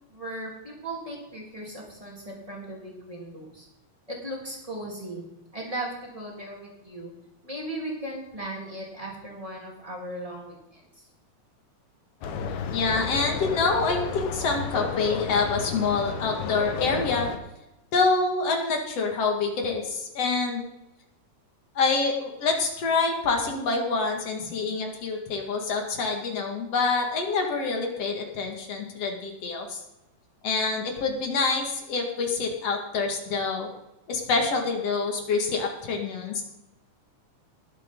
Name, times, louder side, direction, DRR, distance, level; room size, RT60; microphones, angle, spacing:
voice 1, 0.1-3.6 4.1-5.3 5.5-7.1 7.4-10.8, right 1 dB, 10° right, -3 dB, 3.4 m, -37 dB
sound 1, 12.2-17.4, left 6 dB, 75° left, 2.5 m, -32 dB
voice 2, 12.7-17.3 17.9-20.6 21.8-29.8 30.4-33.7 34.1-36.4, left 4 dB, 55° left, 2 dB, 2.9 m, -26 dB
20.0 x 8.7 x 3.9 m, 0.94 s
omnidirectional pair, 3.4 m